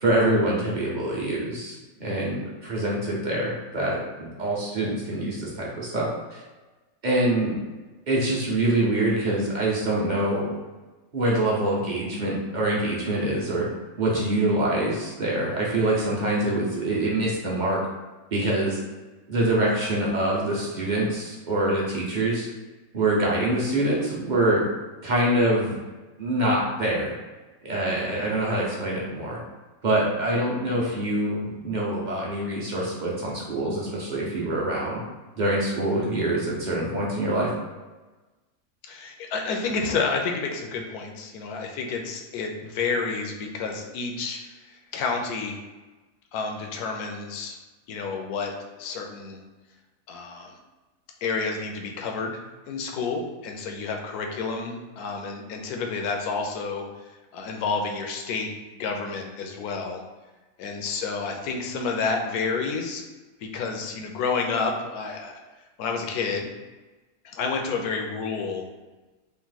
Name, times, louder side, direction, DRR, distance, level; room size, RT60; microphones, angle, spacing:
voice 1, 0.0-6.4 7.0-7.6 8.1-10.5 11.1-13.6 14.0-17.8 18.3-18.8 19.3-22.5 22.9-24.6 25.0-25.8 26.2-27.1 27.6-29.4 29.8-35.0 35.4-37.5, right 1 dB, 40° right, -4 dB, 0.7 m, -25 dB
voice 2, 38.9-45.6 46.3-47.6 47.9-49.4 50.1-50.6 51.2-52.4 52.7-56.9 57.3-60.0 60.6-63.0 63.4-65.4 65.8-66.5 67.2-68.7, left 4 dB, 80° left, 3 dB, 1.1 m, -30 dB
3.5 x 2.5 x 3.9 m, 1.2 s
omnidirectional pair, 1.6 m